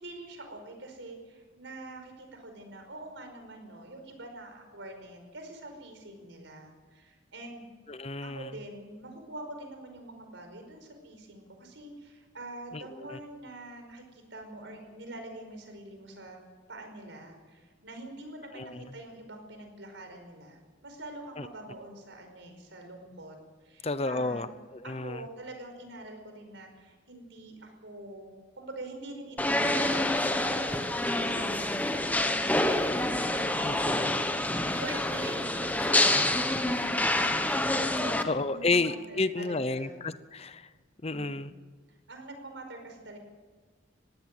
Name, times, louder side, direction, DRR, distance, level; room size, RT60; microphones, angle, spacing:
voice 1, 0.0-7.7 8.2-16.4 16.7-23.4 23.6-24.5 24.8-34.0 34.5-37.5 38.0-40.0 41.1-41.5 41.9-43.2, right 1 dB, 75° right, 5 dB, 5.2 m, -45 dB
voice 2, 7.9-8.4 12.7-12.8 13.1-13.2 18.6-18.8 21.4-21.5 23.8-24.5 24.9-25.2 33.6-34.0 38.2-40.7 41.0-41.5, left 3 dB, 30° left, 14 dB, 0.7 m, -31 dB
sound 1, 29.4-38.2, left 1 dB, 10° left, 1.2 m, -27 dB
21.0 x 16.0 x 7.9 m, 1.4 s
head